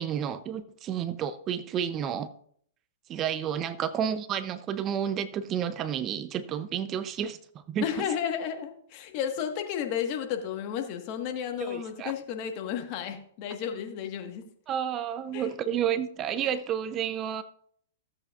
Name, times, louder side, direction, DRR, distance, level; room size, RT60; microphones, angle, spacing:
voice 1, 0.0-2.3 3.1-7.8 11.6-12.1 14.7-17.4, right 9 dB, 30° right, 13 dB, 0.5 m, -31 dB
voice 2, 7.8-14.4 15.3-15.5 16.4-16.5, left 8 dB, 45° left, 5 dB, 1.4 m, -33 dB
16.0 x 7.9 x 2.4 m, 0.63 s
hypercardioid pair, 130°, 0 cm